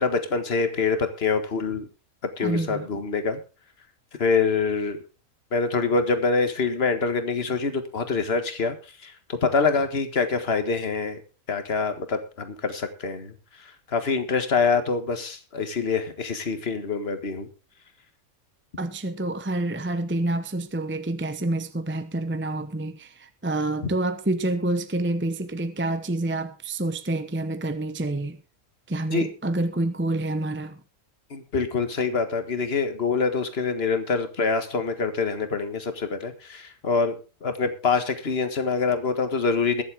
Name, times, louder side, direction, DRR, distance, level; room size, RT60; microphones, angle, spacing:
voice 1, 0.0-1.9 2.4-3.4 4.2-5.0 5.5-11.2 11.5-17.5 29.1-29.3 31.3-37.1 37.4-39.8, left 4 dB, 45° left, 1.8 m, -25 dB
voice 2, 2.4-2.9 18.8-28.4 28.9-30.8, right 2 dB, 10° right, 0.7 m, -28 dB
22.0 x 7.6 x 3.6 m
omnidirectional pair, 1.5 m